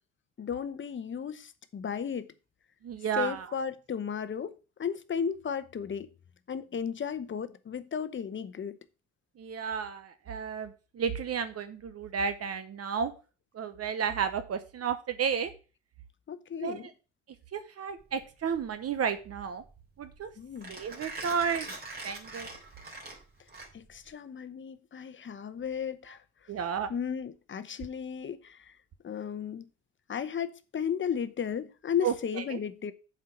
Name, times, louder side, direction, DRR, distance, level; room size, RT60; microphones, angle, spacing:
voice 1, 0.4-2.3 3.2-6.1 6.5-8.8 16.3-16.9 20.4-20.7 23.7-26.2 26.9-28.8 29.0-29.6 30.1-32.9, left 7 dB, 40° left, 0.9 m, -34 dB
voice 2, 2.8-3.5 9.4-13.1 13.5-15.5 16.6-16.9 17.5-19.6 20.0-20.3 20.7-21.7 22.0-22.5 26.5-26.9 32.0-32.6, right 7 dB, 55° right, 0.9 m, -32 dB
Mechanisms, 18.0-24.1, right 3 dB, 30° right, 3.5 m, -44 dB
7.5 x 4.6 x 5.9 m
cardioid pair, 90°, 30 cm